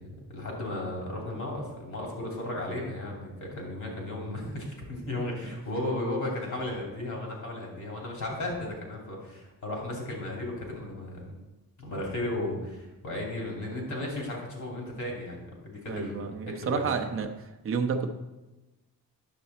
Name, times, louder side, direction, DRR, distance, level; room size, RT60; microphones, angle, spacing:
voice 1, 0.0-11.3 11.8-16.2 16.5-16.8, left 1 dB, 55° left, -1 dB, 3.0 m, -35 dB
voice 2, 15.9-17.3 17.6-18.1, right 5 dB, 35° right, 4 dB, 0.7 m, -30 dB
9.5 x 6.8 x 4.2 m, 1.1 s
wide cardioid pair, 150°, 36 cm